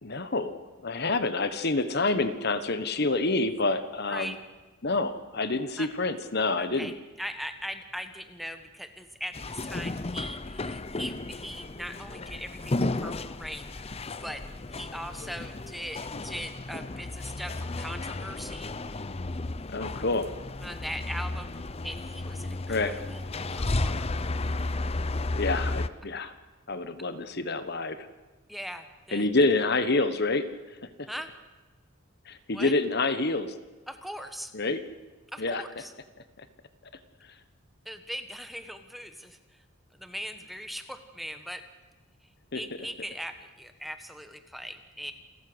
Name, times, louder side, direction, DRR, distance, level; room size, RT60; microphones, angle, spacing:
voice 1, 0.0-4.3 4.8-6.9 19.7-20.3 22.7-22.9 25.3-26.3 26.7-28.1 29.1-30.5 32.3-33.5 34.5-34.8 35.4-35.6 42.5-42.6, left 3 dB, 50° left, 11 dB, 1.3 m, -27 dB
voice 2, 4.1-4.4 5.8-5.9 6.6-14.4 14.7-18.7 20.6-23.2 23.5-24.1 28.5-29.3 31.1-31.3 32.5-32.7 33.9-34.5 35.3-35.9 37.8-39.6 40.0-41.6 42.5-45.1, equal, ahead, 8 dB, 1.3 m, -40 dB
sound 1, 9.3-25.9, left 2 dB, 30° left, 0.7 m, -33 dB
28.0 x 14.0 x 8.0 m, 1.2 s
head